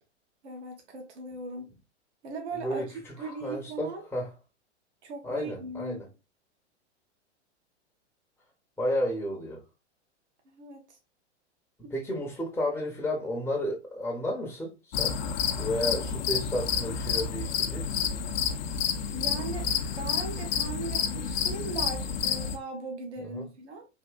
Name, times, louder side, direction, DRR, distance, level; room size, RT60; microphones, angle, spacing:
voice 1, 0.4-1.7 2.2-4.0 5.0-6.0 10.4-11.0 11.8-11.9 19.1-19.7 19.9-23.9, right 3 dB, 70° right, 1.1 m, -38 dB
voice 2, 2.6-4.3 5.2-6.1 8.8-9.6 11.9-15.2 15.6-18.2 23.2-23.5, left 1 dB, 5° left, 0.7 m, -32 dB
sound 1, 14.9-22.6, left 7 dB, 45° left, 0.5 m, -29 dB
3.5 x 2.7 x 2.2 m
hypercardioid pair, 110°, 36 cm